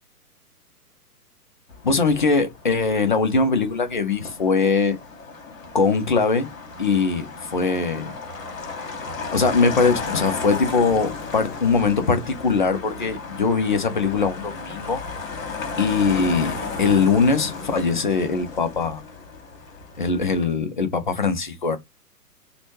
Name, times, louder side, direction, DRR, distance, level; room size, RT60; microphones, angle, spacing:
Motor vehicle (road), 1.7-20.4, left 4 dB, 55° left, 1.2 m, -34 dB
voice 1, 1.8-5.0 5.7-6.5 6.8-8.2 9.3-15.0 15.8-19.0 20.0-21.8, left 4 dB, 35° left, 0.4 m, -21 dB
3.0 x 2.1 x 3.0 m
figure-of-eight pair, 125°, 47 cm